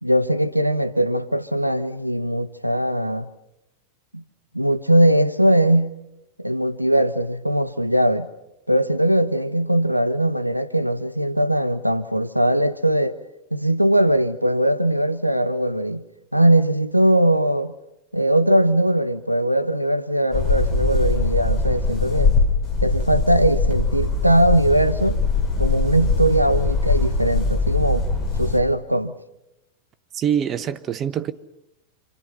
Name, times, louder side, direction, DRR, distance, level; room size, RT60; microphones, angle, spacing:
voice 1, 0.0-3.3 4.1-4.2 4.5-6.0 6.4-8.3 8.7-13.2 13.5-16.0 16.3-17.7 18.1-22.3 22.8-25.2 25.6-28.1 28.4-29.1, right 1 dB, 90° right, 1.0 m, -20 dB
sound 1, 20.3-28.6, left 3 dB, 35° left, 4.3 m, -22 dB
voice 2, 30.1-31.3, right 9 dB, 30° right, 1.2 m, -24 dB
28.0 x 27.5 x 5.7 m
figure-of-eight pair, 90°, 0 cm